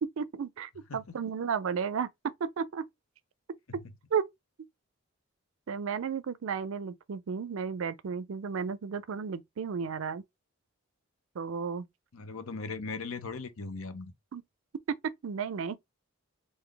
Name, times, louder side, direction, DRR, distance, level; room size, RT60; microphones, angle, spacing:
voice 1, 0.0-2.9 4.1-4.3 5.7-10.2 11.4-11.9 14.3-14.4 14.9-15.8, right 6 dB, 65° right, 0.4 m, -33 dB
voice 2, 12.1-14.1, left 4 dB, 70° left, 0.7 m, -38 dB
3.9 x 2.6 x 3.2 m
head